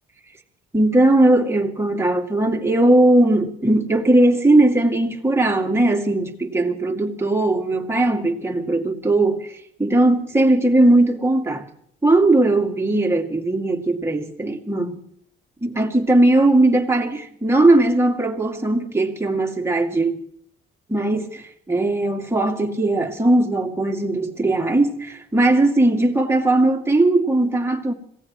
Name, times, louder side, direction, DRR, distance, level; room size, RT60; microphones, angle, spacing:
voice 1, 0.7-9.5 9.8-11.6 12.0-15.0 15.6-20.2 20.9-27.9, right 2 dB, 15° right, 2.4 m, -18 dB
26.5 x 17.0 x 3.1 m
cardioid pair, 90°, 20 cm